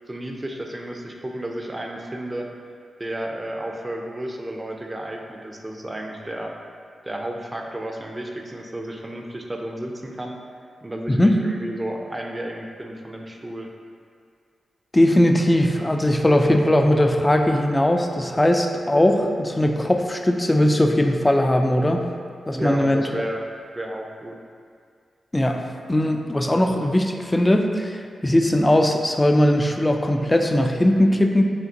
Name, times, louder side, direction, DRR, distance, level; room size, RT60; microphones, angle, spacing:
voice 1, 0.1-2.5 3.0-6.5 7.0-10.4 10.8-13.7 22.5-23.4 23.8-24.4, right 1 dB, 25° right, 1 dB, 0.6 m, -32 dB
voice 2, 11.1-11.4 14.9-22.0 22.5-23.2 25.3-31.4, left 1 dB, 20° left, 4 dB, 0.4 m, -19 dB
5.1 x 2.8 x 2.8 m, 2.1 s
supercardioid pair, 45°, 0 cm